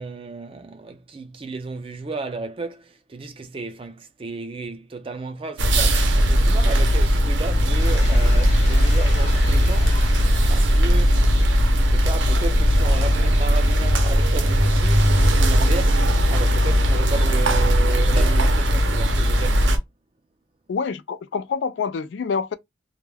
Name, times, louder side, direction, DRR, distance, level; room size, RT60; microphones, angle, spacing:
voice 1, 0.0-10.0 10.5-11.4 11.8-19.7, right 3 dB, 30° right, 0.4 m, -33 dB
sound 1, 5.6-19.8, equal, 80° right, 0.6 m, -18 dB
sound 2, 7.8-14.3, left 2 dB, 35° left, 0.7 m, -41 dB
voice 2, 20.7-22.6, left 5 dB, 75° left, 0.3 m, -26 dB
2.2 x 2.2 x 3.2 m
head